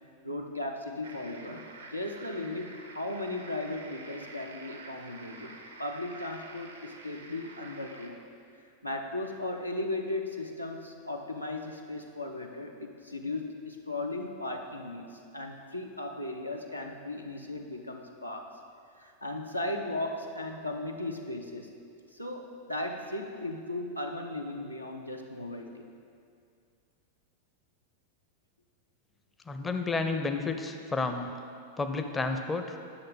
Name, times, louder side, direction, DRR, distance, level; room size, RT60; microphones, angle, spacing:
voice 1, 0.2-5.5 5.8-8.2 8.8-18.5 19.0-21.7 22.1-25.9, left 2 dB, 90° left, 1 dB, 0.7 m, -36 dB
sound 1, 1.0-8.1, right 3 dB, 75° right, 0.7 m, -48 dB
voice 2, 29.5-31.3 31.8-32.8, left 3 dB, 15° left, 6 dB, 0.5 m, -31 dB
9.7 x 6.4 x 4.0 m, 2.4 s
figure-of-eight pair, 90°, 0 cm